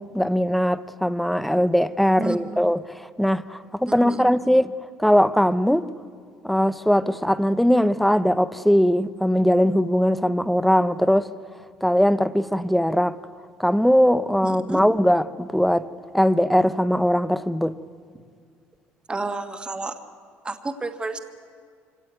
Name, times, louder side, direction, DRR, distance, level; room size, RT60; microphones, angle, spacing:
voice 1, 0.0-4.7 5.0-5.9 6.4-11.3 11.8-13.2 13.6-15.9 16.1-17.8, equal, ahead, 0.7 m, -20 dB
voice 2, 2.2-2.6 3.9-4.5 14.4-14.8 19.1-20.0 20.4-21.2, right 3 dB, 20° right, 1.6 m, -31 dB
24.5 x 17.5 x 9.4 m
cardioid pair, 105°, 5 cm